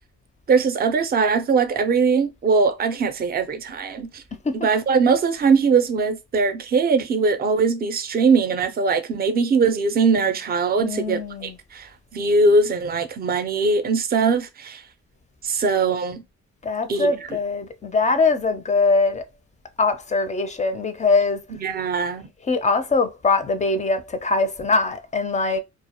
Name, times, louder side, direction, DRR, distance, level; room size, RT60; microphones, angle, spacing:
voice 1, 0.5-4.2 4.5-14.8 15.4-16.2 16.9-17.1 21.5-22.2, right 4 dB, 30° right, 0.5 m, -21 dB
voice 2, 10.8-11.6 16.6-19.2 19.8-21.4 22.4-25.6, left 3 dB, 25° left, 0.4 m, -22 dB
2.2 x 2.0 x 2.8 m
cardioid pair, 90°, 30 cm